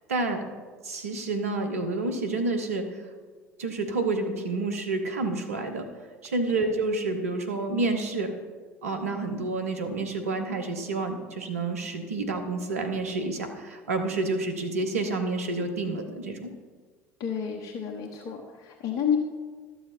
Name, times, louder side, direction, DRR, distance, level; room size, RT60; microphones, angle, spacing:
voice 1, 0.1-0.4 0.8-3.1 3.6-5.9 6.2-8.3 8.8-16.5, right 3 dB, 85° right, 6 dB, 1.1 m, -29 dB
voice 2, 17.2-19.2, left 8 dB, 55° left, 0 dB, 1.2 m, -30 dB
13.0 x 6.9 x 4.3 m, 1.5 s
hypercardioid pair, 65°, 8 cm